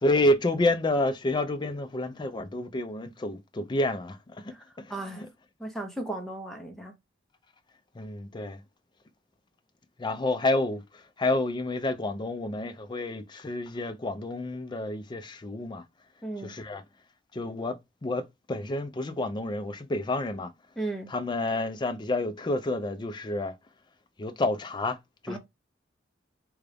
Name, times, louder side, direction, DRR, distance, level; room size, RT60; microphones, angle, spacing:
voice 1, 0.0-5.3 7.9-8.6 10.0-15.8 16.4-16.8 17.3-20.5 21.1-23.6 24.2-25.0 25.2-25.4, left 2 dB, 25° left, 0.4 m, -29 dB
voice 2, 4.9-5.3 5.6-6.9 16.2-16.5 20.8-21.1 25.3-25.4, right 2 dB, ahead, 0.8 m, -35 dB
3.8 x 2.3 x 3.3 m
head